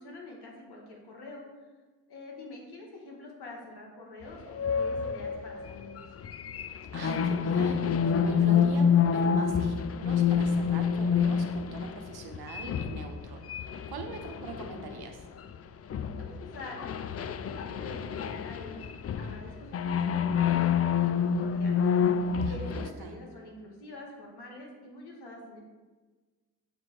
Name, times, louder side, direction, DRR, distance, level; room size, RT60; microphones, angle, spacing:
voice 1, 0.0-1.4 2.1-6.0 16.1-16.8 17.1-18.8 19.2-20.7 21.0-21.8 22.5-25.6, left 2 dB, 75° left, -1 dB, 1.7 m, -46 dB
sound 1, 4.5-15.6 15.9-22.9, left 7 dB, 40° left, 0.4 m, -28 dB
voice 2, 6.9-15.2 22.4-23.2, right 4 dB, 70° right, 3 dB, 1.0 m, -42 dB
7.5 x 3.0 x 6.0 m, 1.3 s
cardioid pair, 55°, 39 cm